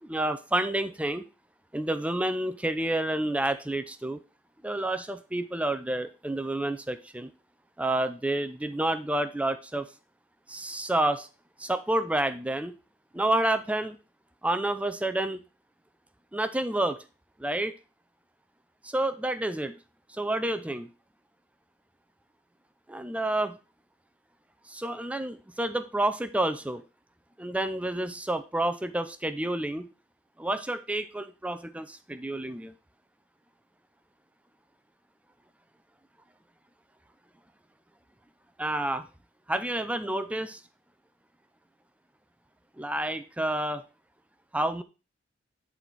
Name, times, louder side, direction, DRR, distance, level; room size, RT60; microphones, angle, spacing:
voice 1, 0.0-1.2 1.7-4.2 4.6-7.3 7.8-9.9 10.5-11.3 11.7-12.7 13.1-14.0 14.4-15.4 16.3-17.0 17.4-17.7 18.8-19.7 20.1-20.9 22.9-23.6 24.7-26.8 27.4-29.9 30.4-32.7 38.6-39.1 39.5-40.6 42.8-43.8 44.5-44.8, right 1 dB, 5° right, 11 dB, 0.5 m, -29 dB
9.8 x 4.2 x 4.5 m, 0.32 s
head